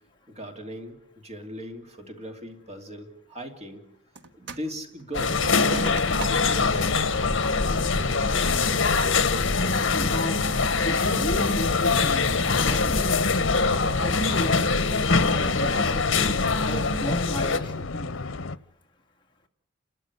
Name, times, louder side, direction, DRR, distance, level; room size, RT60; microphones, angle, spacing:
voice 1, 0.3-3.9 4.3-6.9, equal, 35° right, 2.7 m, -39 dB
sound 1, 4.2-4.7 5.0-6.7 7.2-7.3 7.8-8.2 8.7-9.1, right 4 dB, 60° right, 1.5 m, -41 dB
sound 2, 5.1-17.6, left 4 dB, 65° left, 1.6 m, -23 dB
sound 3, 6.5-18.6, left 3 dB, 85° left, 0.9 m, -34 dB
voice 2, 9.9-10.4 10.8-12.2 12.6-13.2 14.0-14.7 15.1-16.3 16.6-18.2, equal, 25° left, 2.4 m, -34 dB
29.5 x 13.0 x 9.8 m
head